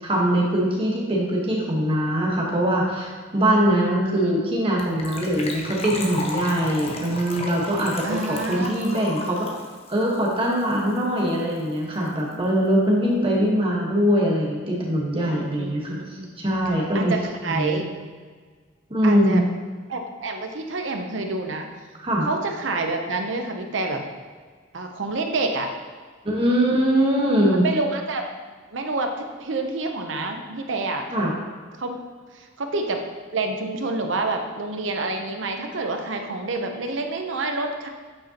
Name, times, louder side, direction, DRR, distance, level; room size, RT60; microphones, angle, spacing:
voice 1, 0.0-9.5 9.9-16.0 16.4-17.1 17.5-17.8 18.9-19.4 22.0-22.3 26.2-27.6 31.1-31.3, equal, 25° right, -2 dB, 1.3 m, -22 dB
voice 2, 4.0-4.6 8.0-8.8 10.7-10.8 15.2-16.3 16.9-17.9 19.0-19.4 19.9-21.7 22.2-24.0 24.7-25.7 27.5-28.2 28.7-31.3 31.8-32.0 32.3-33.0 33.3-37.9, right 3 dB, 70° right, 4 dB, 0.7 m, -28 dB
Gurgling / Trickle dribble / Fill (with liquid), 4.8-11.0 11.3-11.4 11.6-11.8 12.1-12.2, left 2 dB, 30° left, 0.8 m, -34 dB
8.5 x 5.1 x 2.9 m, 1.5 s
head